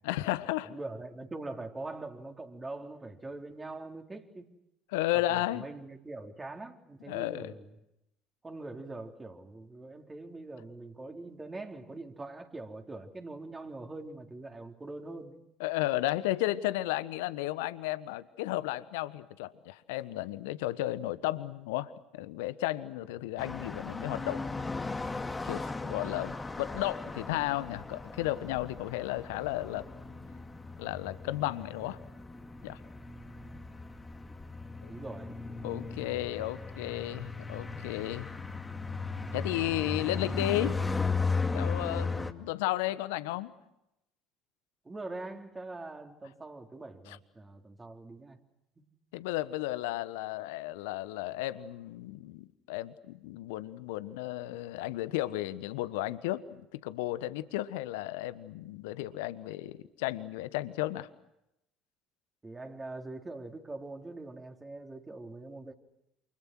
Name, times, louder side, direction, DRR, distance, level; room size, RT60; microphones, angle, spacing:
voice 1, 0.0-0.7 4.9-5.6 7.1-7.5 15.6-24.4 25.4-29.8 30.8-32.0 32.6-32.8 34.8-34.9 35.6-38.3 39.3-40.8 41.5-43.5 47.1-47.2 49.1-61.1, left 16 dB, 70° left, 1.3 m, -33 dB
voice 2, 0.7-4.5 5.1-7.7 8.4-15.4 34.9-35.7 44.8-48.4 48.8-48.9 62.4-65.7, right 2 dB, 20° right, 3.9 m, -43 dB
sound 1, 23.4-42.3, left 4 dB, 15° left, 2.5 m, -36 dB
29.5 x 28.0 x 6.2 m
figure-of-eight pair, 60°, 0 cm